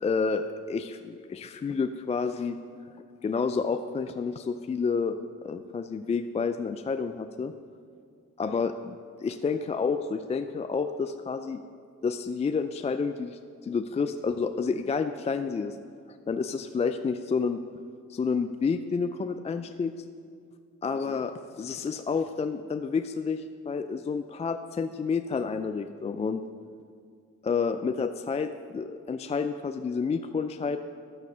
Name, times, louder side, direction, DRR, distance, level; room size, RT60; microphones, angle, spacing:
voice 1, 0.0-2.6 3.2-7.5 8.4-9.0 9.2-11.6 12.0-15.8 16.3-17.6 18.1-19.9 20.8-26.4 27.4-30.8, left 5 dB, 20° left, 8 dB, 0.4 m, -29 dB
11.0 x 7.1 x 6.6 m, 2.3 s
cardioid pair, 90°, 30 cm